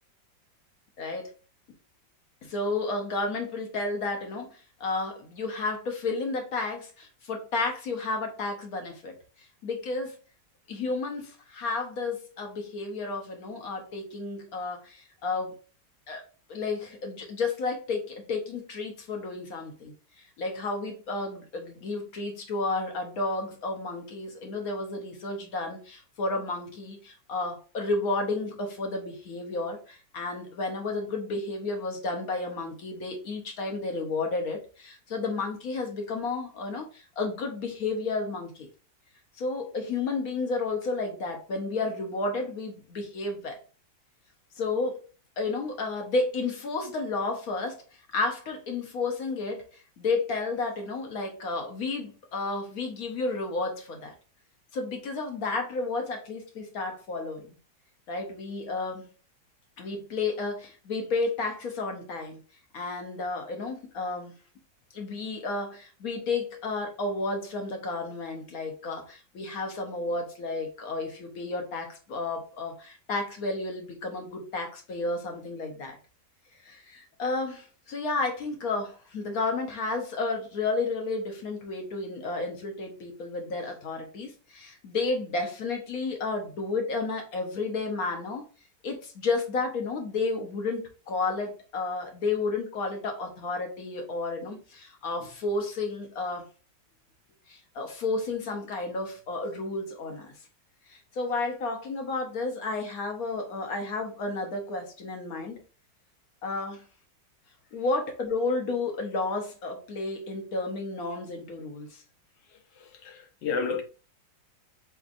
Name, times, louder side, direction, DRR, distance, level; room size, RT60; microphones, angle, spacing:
voice 1, 1.0-1.3 2.4-10.2 10.7-15.6 16.1-38.7 39.4-43.6 44.6-45.0 45.4-47.8 48.1-54.1 54.7-57.6 58.1-59.1 59.8-62.4 62.7-64.3 64.9-76.0 76.6-88.5 88.8-96.4 97.5-100.3 100.9-105.6 106.4-106.8 107.7-112.0, left 3 dB, 60° left, 1.1 m, -32 dB
voice 2, 112.5-113.8, left 5 dB, 75° left, 1.4 m, -32 dB
4.2 x 3.4 x 2.5 m
omnidirectional pair, 2.0 m